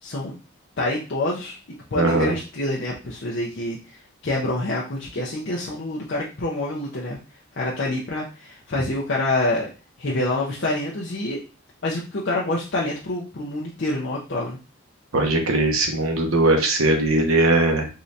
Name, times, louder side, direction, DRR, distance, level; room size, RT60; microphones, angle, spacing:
voice 1, 0.0-0.4 0.8-1.6 1.9-3.8 4.2-7.2 7.6-9.7 10.0-11.4 11.8-14.6, left 2 dB, 55° left, -5 dB, 0.7 m, -26 dB
voice 2, 1.9-2.3 15.1-17.9, right 2 dB, 80° right, 3 dB, 1.0 m, -20 dB
3.8 x 3.2 x 2.7 m, 0.33 s
head